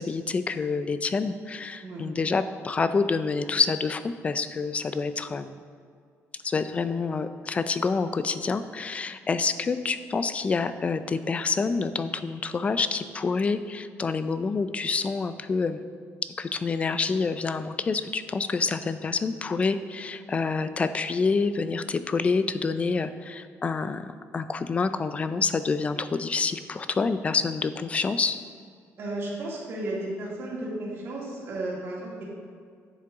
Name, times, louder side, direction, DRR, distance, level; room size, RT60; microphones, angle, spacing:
voice 1, 0.0-5.6 6.4-15.8 16.4-28.4, left 4 dB, 25° left, 12 dB, 0.4 m, -27 dB
voice 2, 29.0-32.2, right 1 dB, 50° right, -4 dB, 2.3 m, -33 dB
9.7 x 7.5 x 3.6 m, 2.1 s
cardioid pair, 150°, 5 cm